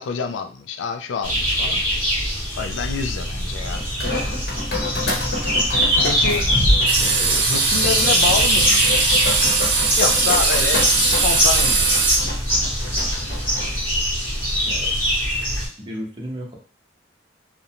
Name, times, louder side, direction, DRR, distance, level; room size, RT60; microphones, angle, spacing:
voice 1, 0.0-1.8 2.6-3.8 5.7-8.9 10.0-12.3, left 6 dB, 80° left, 6 dB, 0.3 m, -28 dB
sound 1, 1.2-15.7, equal, 10° left, 0.9 m, -22 dB
sound 2, 3.7-13.8, left 1 dB, 60° left, 0.9 m, -27 dB
circular saw, 6.9-12.2, right 5 dB, 60° right, 0.4 m, -20 dB
voice 2, 15.8-16.6, equal, 25° right, -2 dB, 0.7 m, -33 dB
2.5 x 2.1 x 2.8 m, 0.40 s
head